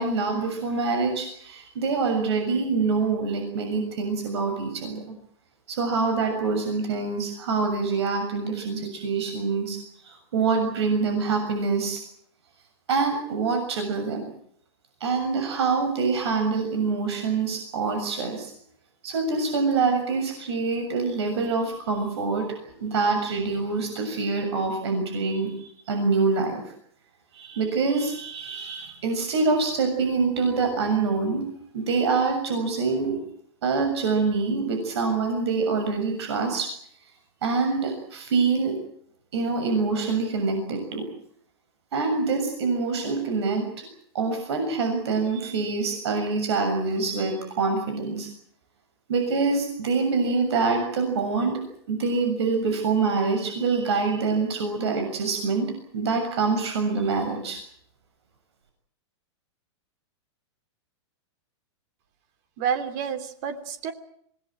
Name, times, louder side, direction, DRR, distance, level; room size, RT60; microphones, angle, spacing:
voice 1, 0.0-5.0 5.7-12.0 12.9-14.2 15.0-18.5 19.0-26.7 27.3-31.5 31.7-33.2 33.6-36.7 37.4-38.7 39.3-41.0 41.9-43.9 44.1-48.3 49.1-51.6 51.9-57.6, right 4 dB, 65° right, 5 dB, 6.9 m, -25 dB
voice 2, 62.6-63.9, right 7 dB, 35° right, 10 dB, 3.2 m, -29 dB
26.5 x 19.5 x 7.8 m, 0.68 s
supercardioid pair, 165°, 15 cm